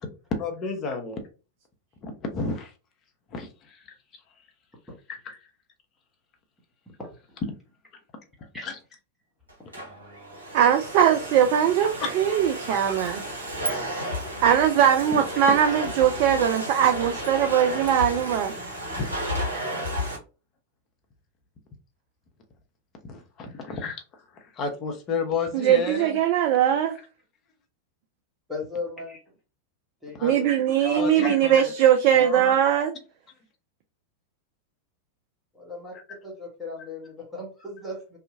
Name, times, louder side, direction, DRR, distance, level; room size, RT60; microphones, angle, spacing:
voice 1, 0.3-1.2 2.0-2.7 3.3-3.8 5.1-5.4 8.6-8.7 12.0-12.1 13.7-14.1 19.0-19.1 23.0-24.0 24.3-26.2 30.1-30.3 31.0-31.7 32.2-32.6, left 4 dB, 30° left, 0.7 m, -32 dB
Domestic sounds home sounds, 9.5-20.2, equal, 75° right, 1.1 m, -33 dB
voice 2, 10.5-13.2 14.4-18.5 25.5-27.0 30.2-32.9, right 9 dB, 45° right, 0.3 m, -21 dB
voice 3, 12.7-13.2 13.6-13.7 28.5-29.2 30.0-30.2 30.8-31.3 35.5-35.9 36.2-38.2, left 2 dB, ahead, 0.9 m, -36 dB
Zipper (clothing), 12.9-13.7 14.0-18.4, right 1 dB, 90° left, 0.3 m, -38 dB
2.7 x 2.3 x 2.5 m
figure-of-eight pair, 90°, 0 cm